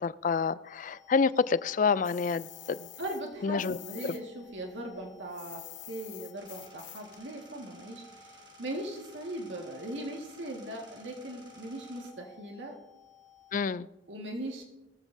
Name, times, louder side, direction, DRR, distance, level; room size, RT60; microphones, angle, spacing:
voice 1, 0.0-2.9 3.4-3.8 4.0-4.1 13.5-13.9, left 5 dB, 45° left, 17 dB, 0.4 m, -28 dB
sound 1, 0.6-13.7, left 4 dB, ahead, 5.4 m, -57 dB
sound 2, 2.0-4.2 4.5-7.2, left 14 dB, 70° left, 0.9 m, -47 dB
voice 2, 3.0-12.8 14.1-14.6, right 1 dB, 80° right, 1 dB, 1.8 m, -39 dB
sound 3, 6.3-12.1, right 3 dB, 25° right, 1.9 m, -56 dB
19.0 x 14.5 x 2.7 m, 1.0 s
head